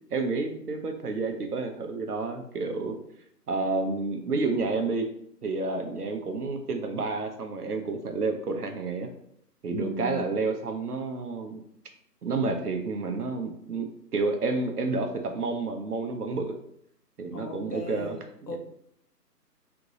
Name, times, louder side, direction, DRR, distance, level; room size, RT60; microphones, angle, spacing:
voice 1, 0.1-2.9 3.5-5.1 5.4-9.1 9.6-11.6 12.2-16.5 17.2-18.6, right 3 dB, 70° right, 4 dB, 0.9 m, -30 dB
voice 2, 9.7-10.3 17.3-18.2 18.5-18.6, left 3 dB, 80° left, 4 dB, 1.0 m, -37 dB
3.7 x 3.6 x 3.0 m, 0.70 s
figure-of-eight pair, 155°, 49 cm